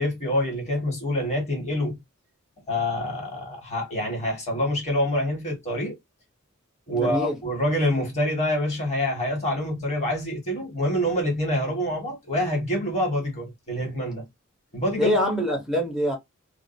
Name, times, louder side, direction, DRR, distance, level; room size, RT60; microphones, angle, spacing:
voice 1, 0.0-2.0 2.7-5.9 6.9-14.2 14.7-15.3, left 1 dB, 30° left, 1.6 m, -26 dB
voice 2, 6.9-7.4 15.0-16.1, equal, ahead, 0.8 m, -24 dB
2.5 x 2.4 x 2.5 m
head